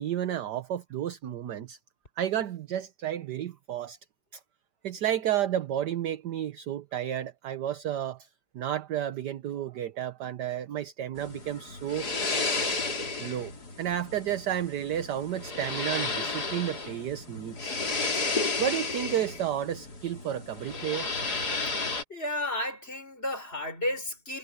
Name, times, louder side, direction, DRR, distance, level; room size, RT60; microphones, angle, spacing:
voice 1, 0.0-1.8 2.2-4.0 4.3-4.4 4.8-8.3 8.5-12.1 13.2-13.5 13.8-17.7 18.6-21.1, right 11 dB, 60° right, 1.4 m, -31 dB
sound 1, 11.2-22.0, left 3 dB, 50° left, 3.8 m, -33 dB
voice 2, 22.1-24.4, left 1 dB, 25° left, 6.1 m, -32 dB
omnidirectional pair, 2.3 m